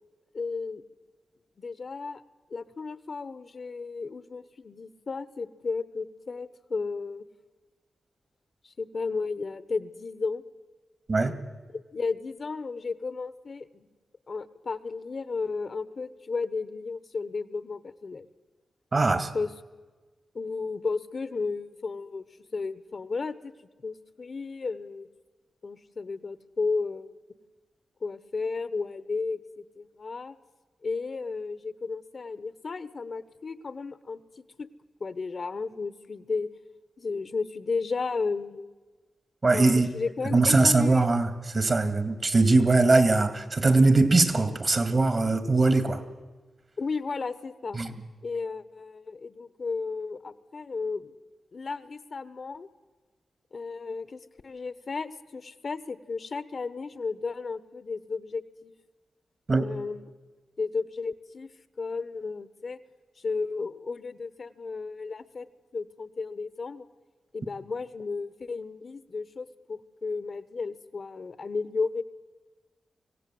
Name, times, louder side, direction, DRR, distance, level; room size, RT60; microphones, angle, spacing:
voice 1, 0.3-0.8 1.6-2.2 2.5-7.3 8.6-10.4 11.7-13.9 14.3-18.3 19.3-19.5 20.3-22.2 22.5-23.5 23.8-25.1 25.6-27.1 28.0-29.4 29.8-30.4 30.8-34.2 34.6-34.7 35.0-36.5 37.0-38.7 39.5-41.0 46.8-47.8 48.2-51.1 51.5-52.7 53.5-58.7 59.6-60.1 60.6-61.5 61.8-62.8 63.2-65.5 65.7-66.9 67.3-72.0, left 4 dB, 55° left, 14 dB, 1.0 m, -33 dB
voice 2, 18.9-19.3 39.4-39.9 40.3-46.0 47.7-47.9 59.5-59.7, right 3 dB, 45° right, 10 dB, 2.2 m, -21 dB
25.0 x 16.5 x 7.8 m, 1.3 s
cardioid pair, 50°, 0 cm